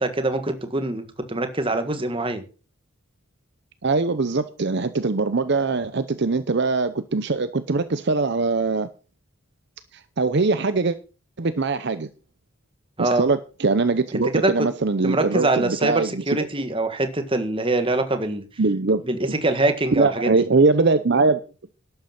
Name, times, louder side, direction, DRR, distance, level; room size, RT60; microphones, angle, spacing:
voice 1, 0.0-2.4 13.0-13.2 14.3-14.7 15.0-18.4 19.0-20.3, right 2 dB, 25° right, 1.6 m, -24 dB
voice 2, 3.8-8.9 10.2-11.0 11.4-12.1 13.0-16.4 18.6-19.3 19.9-21.4, right 3 dB, 55° right, 0.7 m, -22 dB
11.5 x 8.1 x 5.9 m
head